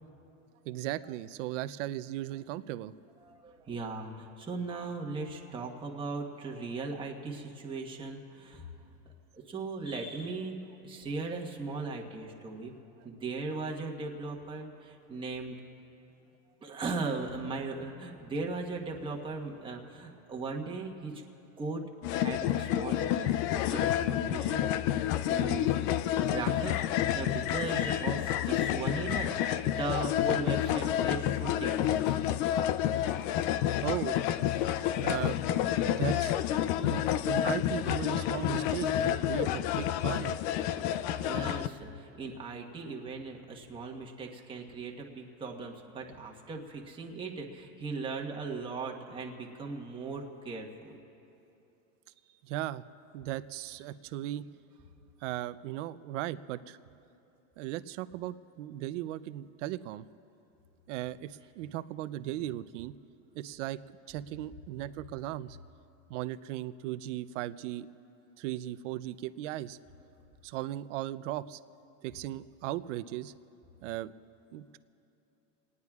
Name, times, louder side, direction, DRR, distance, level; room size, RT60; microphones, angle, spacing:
voice 1, 0.7-2.9 33.8-34.2 35.0-35.4 35.8-36.4 36.7-40.4 52.4-52.8 53.1-54.4 55.2-56.8 57.6-60.1 60.9-62.9 63.4-63.8 64.1-65.6 66.1-67.9 68.4-69.8 70.4-71.6 72.0-73.3 73.8-74.1 74.5-74.8, right 14 dB, 60° right, 14 dB, 0.7 m, -37 dB
voice 2, 3.2-12.7 13.0-15.6 16.6-21.2 21.6-21.9 22.2-23.3 23.6-25.7 26.2-32.2 41.2-51.0, right 3 dB, 10° right, 0 dB, 1.3 m, -38 dB
sound 1, 22.0-41.7, left 11 dB, 40° left, 0.5 m, -29 dB
29.0 x 19.0 x 2.4 m, 2.8 s
supercardioid pair, 140°, 41 cm